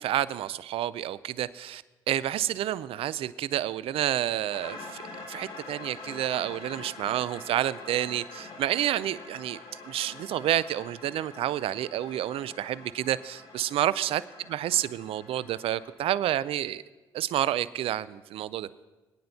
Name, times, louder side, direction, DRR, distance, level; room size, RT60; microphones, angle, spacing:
voice 1, 0.0-5.0 5.3-9.6 9.9-14.2 14.5-16.8 17.1-18.7, right 12 dB, 65° right, 18 dB, 0.4 m, -29 dB
sound 1, 4.5-15.9, left 3 dB, 65° left, 3.2 m, -45 dB
21.5 x 9.5 x 2.8 m, 1.1 s
supercardioid pair, 60°, 10 cm